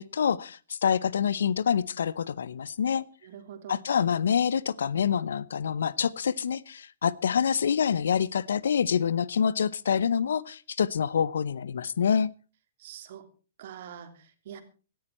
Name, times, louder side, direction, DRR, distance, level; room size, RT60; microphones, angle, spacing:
voice 1, 0.0-3.0 3.7-12.3, left 7 dB, 75° left, 0.7 m, -26 dB
voice 2, 3.2-3.8 12.8-13.3 13.6-14.6, right 9 dB, 60° right, 3.0 m, -44 dB
17.0 x 13.5 x 4.3 m
hypercardioid pair, 120°, 0 cm